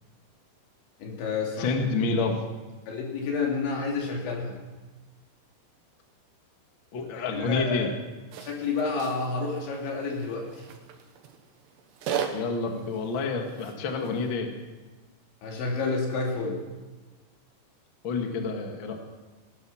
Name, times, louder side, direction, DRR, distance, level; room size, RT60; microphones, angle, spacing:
voice 1, 1.0-1.8 2.9-4.6 7.3-8.0 8.4-10.5 15.4-16.6, left 4 dB, 90° left, 0 dB, 5.2 m, -29 dB
voice 2, 1.6-2.4 6.9-7.9 12.3-14.5 18.0-19.0, left 3 dB, 55° left, 4 dB, 1.3 m, -28 dB
sound 1, 8.3-14.4, right 8 dB, 75° right, 3.4 m, -38 dB
18.5 x 12.5 x 5.7 m, 1.3 s
omnidirectional pair, 5.1 m